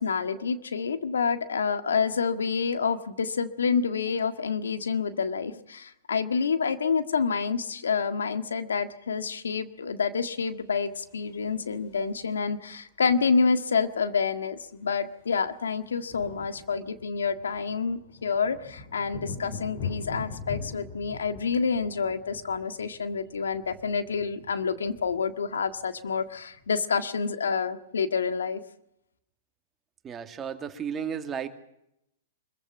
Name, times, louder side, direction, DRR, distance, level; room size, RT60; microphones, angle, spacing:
voice 1, 0.0-28.6, left 5 dB, 85° left, 10 dB, 1.7 m, -28 dB
sound 1, 10.9-12.5 13.8-13.9 14.1-14.3 14.6-26.7, left 5 dB, 50° left, 5.4 m, -43 dB
voice 2, 30.0-31.5, right 7 dB, 25° right, 7 dB, 2.3 m, -34 dB
24.5 x 15.0 x 9.1 m, 0.81 s
hypercardioid pair, 120°, 0 cm